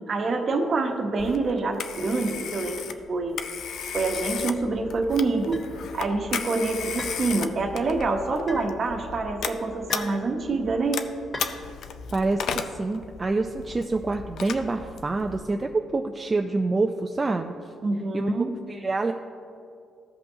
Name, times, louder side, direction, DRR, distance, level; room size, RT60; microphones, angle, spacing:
voice 1, 0.1-3.4 3.9-5.6 5.9-11.1 17.8-18.5, right 3 dB, 50° right, 4 dB, 1.0 m, -26 dB
Telephone, 1.2-15.4, left 7 dB, 70° left, 0.5 m, -35 dB
sound 1, 5.5-5.7 7.0-7.2 8.5-8.7 9.9-10.2 11.3-11.5, left 2 dB, 35° left, 2.1 m, -37 dB
voice 2, 12.1-17.5 18.1-18.3 18.7-19.1, right 3 dB, 25° right, 4 dB, 0.4 m, -26 dB
14.5 x 5.4 x 2.8 m, 2.5 s
cardioid pair, 90°, 0 cm